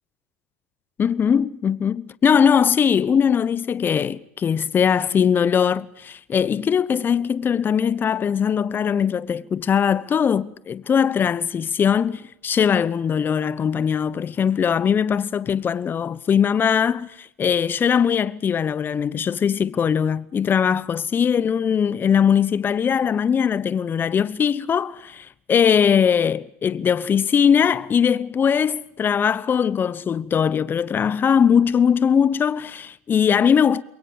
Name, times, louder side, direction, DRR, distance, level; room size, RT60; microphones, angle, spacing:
voice 1, 1.0-33.8, left 7 dB, 30° left, 0.9 m, -20 dB
28.5 x 22.5 x 7.0 m
hypercardioid pair, 95°, 7 cm